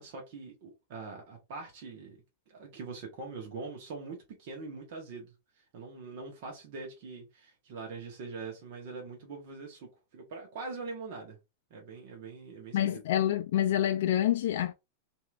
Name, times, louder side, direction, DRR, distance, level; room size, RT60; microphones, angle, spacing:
voice 1, 0.0-2.2 2.5-11.4 11.7-13.0, right 4 dB, 60° right, 1.1 m, -43 dB
voice 2, 12.7-14.7, left 11 dB, 70° left, 0.3 m, -27 dB
2.9 x 2.7 x 2.4 m
hypercardioid pair, 120°, 0 cm